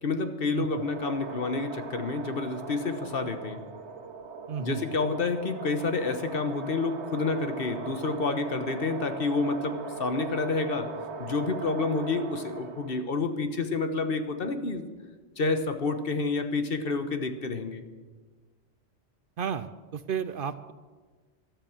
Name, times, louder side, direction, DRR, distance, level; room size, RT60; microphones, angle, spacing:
voice 1, 0.0-3.6 4.6-10.9 11.2-14.9 15.4-17.8, left 3 dB, 55° left, 8 dB, 1.3 m, -29 dB
sound 1, 0.6-13.1, right 5 dB, 80° right, 1.3 m, -40 dB
voice 2, 4.5-4.8 19.4-20.7, right 7 dB, 60° right, 13 dB, 0.7 m, -33 dB
12.5 x 12.5 x 7.2 m, 1.4 s
omnidirectional pair, 1.1 m